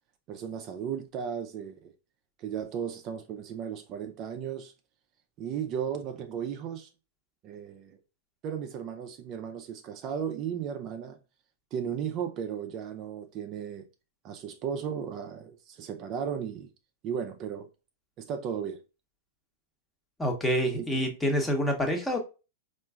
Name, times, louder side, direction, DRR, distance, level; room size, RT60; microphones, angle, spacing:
voice 1, 0.3-1.9 2.4-4.7 5.4-6.9 7.4-8.0 8.4-11.2 11.7-13.9 14.2-16.7 17.0-17.7 18.2-18.8 20.8-20.9, right 8 dB, 40° right, 0.4 m, -35 dB
voice 2, 20.2-22.2, equal, 10° left, 0.8 m, -27 dB
4.4 x 2.5 x 2.3 m
hypercardioid pair, 110°, 0 cm